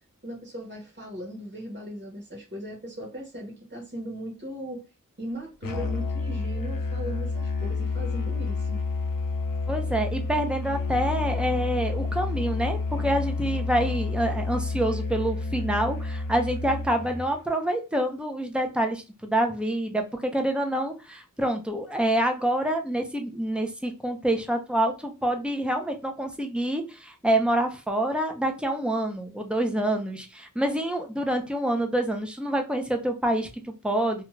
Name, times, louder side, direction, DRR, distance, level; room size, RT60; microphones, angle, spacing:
voice 1, 0.2-4.8 5.2-8.8, equal, 35° right, -3 dB, 1.1 m, -38 dB
Musical instrument, 5.6-17.3, left 3 dB, 90° left, 0.6 m, -29 dB
voice 2, 9.7-34.2, right 1 dB, 5° right, 4 dB, 0.7 m, -27 dB
2.4 x 2.4 x 3.1 m, 0.31 s
wide cardioid pair, 45°, 33 cm